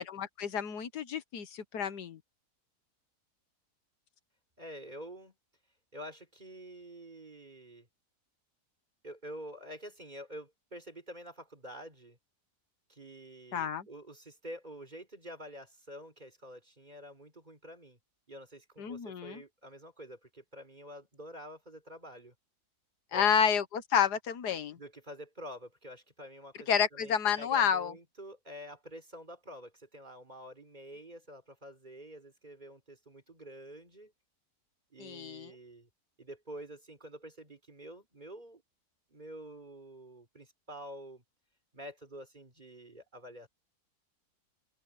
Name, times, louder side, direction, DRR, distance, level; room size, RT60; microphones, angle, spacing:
voice 1, 0.0-2.2 13.5-13.9 18.8-19.4 23.1-24.8 26.7-27.9 35.0-35.5, left 7 dB, 90° left, 1.8 m, -30 dB
voice 2, 4.6-5.4 5.9-7.9 9.0-12.2 12.9-18.0 18.3-22.3 23.1-23.3 24.8-34.1 34.9-35.9 36.2-38.6 39.1-41.2 41.7-43.5, equal, 25° right, 4.0 m, -48 dB
open air
omnidirectional pair, 1.7 m